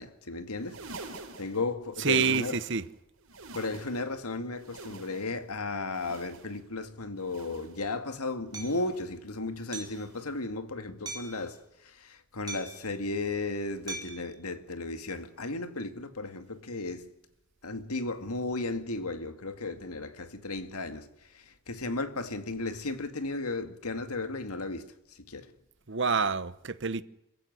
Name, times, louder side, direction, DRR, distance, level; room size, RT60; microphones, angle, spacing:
voice 1, 0.0-2.6 3.5-17.1 17.6-25.5, left 2 dB, 85° left, 2.2 m, -35 dB
sound 1, 0.5-2.9 3.2-4.2 4.5-5.5 5.9-6.7 7.2-7.9 8.5-9.2 9.8-10.4 11.1-11.7 12.5-12.9 13.8-14.1 15.1-15.3 16.5-16.6, right 3 dB, 70° right, 4.1 m, -48 dB
voice 2, 2.0-2.8 25.9-27.0, right 5 dB, 55° right, 1.1 m, -27 dB
Hammer, 8.5-8.8 9.7-10.0 11.1-11.4 12.5-12.9 13.9-14.3, right 3 dB, 20° right, 4.2 m, -40 dB
26.5 x 15.5 x 9.6 m
head